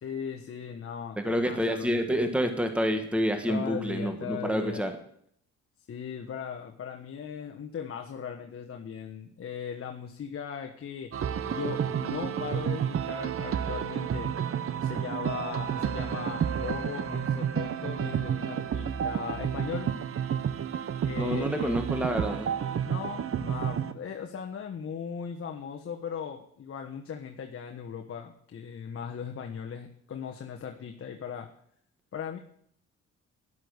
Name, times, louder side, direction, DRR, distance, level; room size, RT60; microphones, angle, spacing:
voice 1, 0.0-2.1 3.5-4.8 5.9-11.1 11.5-14.3 14.8-19.9 21.0-21.8 22.8-31.5 32.1-32.4, left 7 dB, 45° left, 3 dB, 1.3 m, -38 dB
voice 2, 1.2-4.9 21.2-22.5, equal, 5° right, 6 dB, 1.6 m, -28 dB
sound 1, 11.1-23.9, right 8 dB, 45° right, 0.9 m, -31 dB
12.5 x 11.0 x 6.6 m, 0.67 s
cardioid pair, 90°, 30 cm